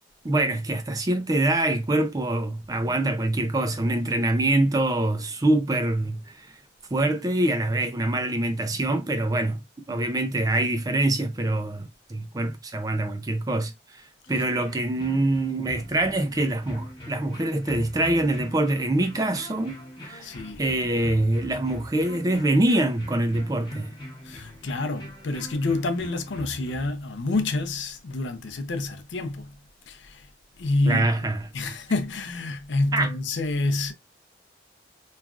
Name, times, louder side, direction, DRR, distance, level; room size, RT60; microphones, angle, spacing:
voice 1, 0.2-6.5 6.9-9.6 9.9-14.0 14.3-20.3 20.6-23.9 30.9-31.5 32.9-33.1, right 1 dB, 20° right, 0.4 m, -25 dB
sound 1, 14.3-26.9, left 1 dB, 25° left, 0.8 m, -42 dB
voice 2, 20.2-20.6 24.3-29.5 29.9-30.2 30.6-31.1 31.5-33.9, left 2 dB, 85° left, 0.6 m, -28 dB
3.1 x 2.4 x 2.4 m
head